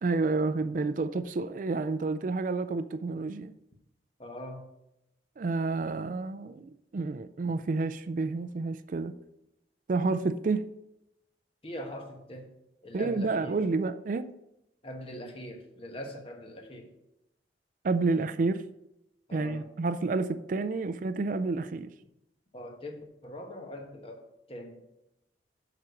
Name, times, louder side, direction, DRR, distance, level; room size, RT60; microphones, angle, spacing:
voice 1, 0.0-3.5 5.4-9.1 9.9-10.7 12.9-14.3 17.8-18.6 19.3-21.9, right 3 dB, 45° right, 0.4 m, -29 dB
voice 2, 4.2-4.7 11.6-12.5 12.8-13.6 14.8-16.9 19.3-19.7 22.5-24.8, left 1 dB, 30° left, 1.2 m, -42 dB
7.4 x 5.0 x 6.2 m
head